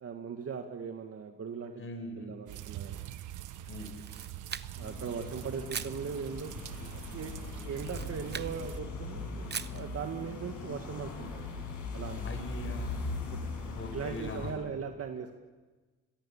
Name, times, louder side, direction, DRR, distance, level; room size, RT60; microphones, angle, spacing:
voice 1, 0.0-1.8 2.1-3.0 4.7-6.5 6.9-7.3 7.6-11.6 11.9-12.2 13.3-13.5 13.9-15.4, right 6 dB, 50° right, 5 dB, 1.8 m, -39 dB
voice 2, 1.8-2.3 3.7-3.9 12.2-13.1 13.7-14.5, left 2 dB, 45° left, 7 dB, 5.0 m, -41 dB
sound 1, 2.5-8.8, right 12 dB, 85° right, 1.2 m, -44 dB
Camera, 3.8-5.0 5.7-6.0 7.7-8.5 9.5-9.8, right 7 dB, 35° right, 0.9 m, -40 dB
sound 2, 4.8-14.5, left 3 dB, 75° left, 7.8 m, -40 dB
28.5 x 22.0 x 7.2 m, 1.3 s
cardioid pair, 90°, 30 cm